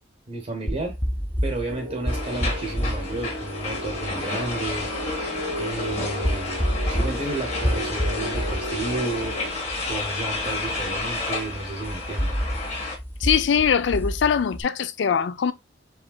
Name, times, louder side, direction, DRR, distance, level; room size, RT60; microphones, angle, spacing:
voice 1, 0.3-1.0 1.4-6.6 6.9-9.4 9.8-12.4, right 2 dB, 40° right, 0.8 m, -32 dB
sound 1, 0.7-14.6, equal, 10° left, 0.5 m, -30 dB
sound 2, 1.6-9.5, equal, 85° right, 1.4 m, -35 dB
sound 3, 2.1-13.0, left 3 dB, 35° left, 1.4 m, -31 dB
voice 2, 13.2-15.5, left 7 dB, 75° left, 0.4 m, -22 dB
4.8 x 3.3 x 2.2 m
head